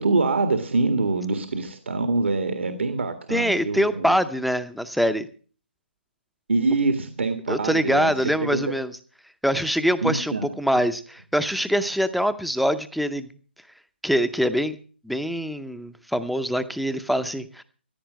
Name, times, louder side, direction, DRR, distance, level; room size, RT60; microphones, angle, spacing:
voice 1, 0.0-4.2 6.5-8.6 10.0-10.5, right 3 dB, 80° right, 8 dB, 1.9 m, -25 dB
voice 2, 3.3-5.3 7.5-8.9 9.4-13.3 14.0-14.8 15.0-17.6, equal, ahead, 11 dB, 0.6 m, -24 dB
15.0 x 9.9 x 6.2 m, 0.41 s
hypercardioid pair, 165°, 6 cm